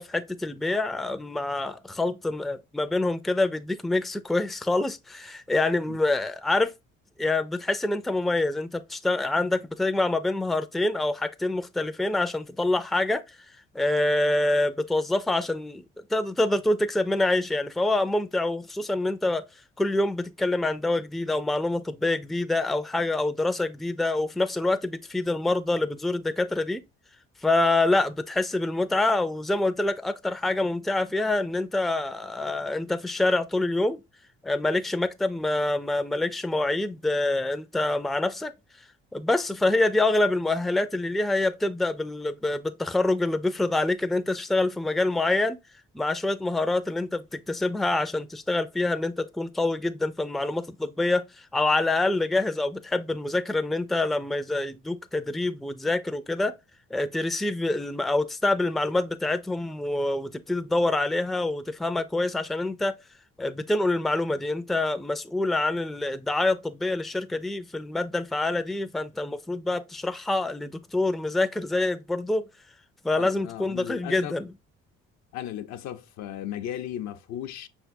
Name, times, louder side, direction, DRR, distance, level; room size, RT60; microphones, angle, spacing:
voice 1, 0.0-6.7 7.2-13.4 13.7-15.8 16.1-19.4 19.8-26.8 27.4-34.0 34.4-38.5 39.1-45.6 45.9-56.5 56.9-62.9 63.4-72.4 73.0-74.5, left 2 dB, ahead, 0.4 m, -26 dB
voice 2, 73.1-74.3 75.3-77.7, left 11 dB, 70° left, 0.6 m, -36 dB
5.6 x 3.5 x 2.6 m
hypercardioid pair, 60°, 29 cm